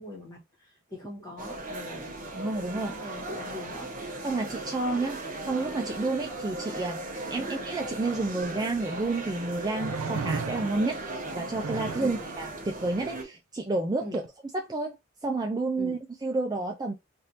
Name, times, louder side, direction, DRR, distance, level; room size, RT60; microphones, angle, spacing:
voice 1, 0.0-2.4 2.7-4.0 7.4-7.5 12.0-12.2 14.0-14.2 15.8-16.0, left 1 dB, 20° left, 1.3 m, -42 dB
sound 1, 1.4-13.2, right 2 dB, 40° right, 0.9 m, -37 dB
voice 2, 2.4-2.9 4.2-7.1 7.3-14.2 14.5-15.0 15.2-16.9, right 2 dB, 20° right, 0.3 m, -30 dB
heavy scrape, 8.5-8.6 9.8-11.0 11.5-12.2 14.1-14.3, right 4 dB, 80° right, 0.5 m, -34 dB
3.4 x 2.5 x 2.8 m
head